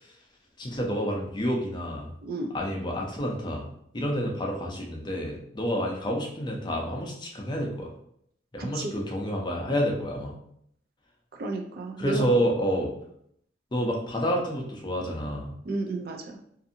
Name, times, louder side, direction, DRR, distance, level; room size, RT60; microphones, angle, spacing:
voice 1, 0.6-2.1 2.5-3.6 3.9-7.9 8.5-10.3 12.0-12.9 13.7-15.5, equal, 25° left, 0 dB, 0.4 m, -29 dB
voice 2, 2.2-2.5 8.6-9.0 11.4-12.2 15.7-16.4, right 2 dB, 50° right, 2 dB, 0.3 m, -32 dB
2.5 x 2.5 x 2.6 m, 0.69 s
head